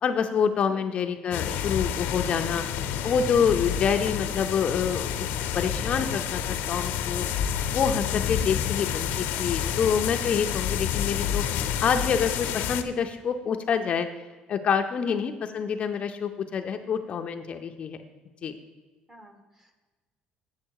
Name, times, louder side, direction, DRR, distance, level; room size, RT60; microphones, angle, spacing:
voice 1, 0.0-2.6 3.0-5.3 5.5-7.2 7.7-11.4 11.8-14.1 14.5-18.0 18.4-18.5, left 7 dB, 40° left, 6 dB, 0.5 m, -27 dB
sound 1, 1.3-12.8, left 9 dB, 90° left, 0.6 m, -29 dB
voice 2, 19.1-19.8, right 1 dB, 15° right, 7 dB, 0.9 m, -50 dB
8.4 x 7.5 x 4.6 m, 1.3 s
cardioid pair, 150°, 3 cm